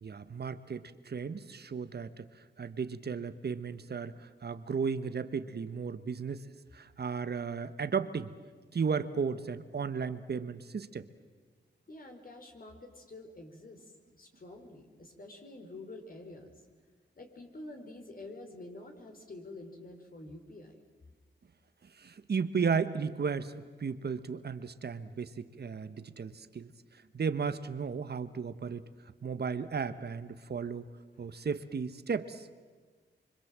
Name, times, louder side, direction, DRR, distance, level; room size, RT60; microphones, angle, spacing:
voice 1, 0.0-2.3 2.6-6.4 6.7-8.3 8.7-11.1 21.8-26.7 27.1-28.8 29.2-30.9 31.2-32.5, right 5 dB, 60° right, 12 dB, 1.3 m, -34 dB
voice 2, 11.9-16.5 17.2-20.8 31.3-31.4, left 2 dB, 50° left, 4 dB, 4.4 m, -48 dB
25.0 x 25.0 x 7.6 m, 1.4 s
cardioid pair, 65°, 19 cm